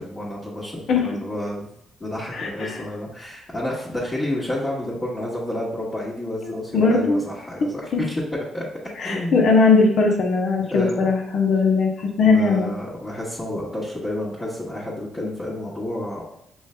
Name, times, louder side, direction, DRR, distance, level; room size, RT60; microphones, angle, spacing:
voice 1, 0.0-1.7 2.0-8.2 8.5-8.6 9.0-9.4 10.7-11.0 12.2-16.2, left 1 dB, 25° left, -9 dB, 1.3 m, -30 dB
voice 2, 2.3-2.8 6.4-7.2 7.9-8.0 9.0-12.7, left 4 dB, 65° left, 1 dB, 0.8 m, -19 dB
6.2 x 3.1 x 2.2 m, 0.77 s
cardioid pair, 90°, 0 cm